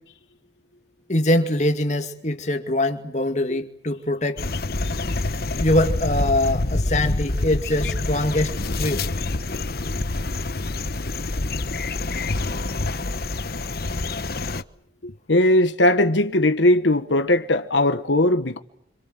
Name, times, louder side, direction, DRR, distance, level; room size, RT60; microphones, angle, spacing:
voice 1, 1.1-4.4 5.6-9.0, left 1 dB, 40° left, 2.3 m, -23 dB
sound 1, 4.4-14.6, left 2 dB, 55° left, 1.1 m, -26 dB
voice 2, 15.0-18.6, left 1 dB, 85° left, 1.5 m, -19 dB
28.0 x 26.5 x 7.7 m
head